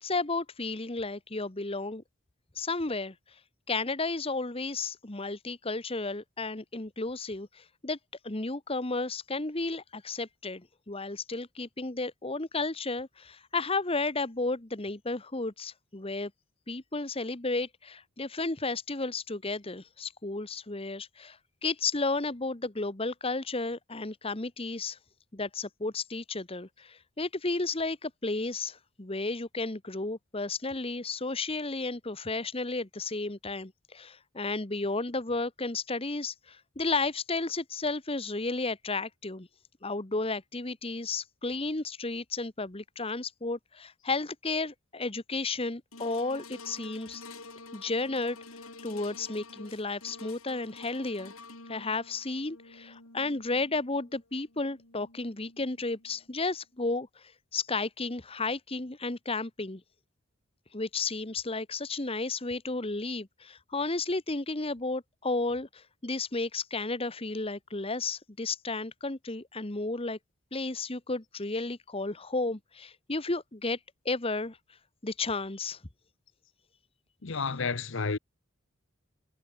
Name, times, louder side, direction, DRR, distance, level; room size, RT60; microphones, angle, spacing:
voice 1, 0.0-2.0 2.6-3.1 3.7-8.0 8.2-16.3 16.7-25.0 25.3-39.5 39.8-47.2 47.7-48.4 48.8-51.3 51.7-57.2 57.5-59.8 60.7-70.2 70.5-73.8 74.0-74.6 75.0-75.8, left 3 dB, 25° left, 1.3 m, -33 dB
sound 1, 45.9-56.3 56.9-57.0, left 3 dB, 85° left, 7.6 m, -49 dB
voice 2, 77.2-78.2, left 4 dB, 60° left, 0.9 m, -31 dB
head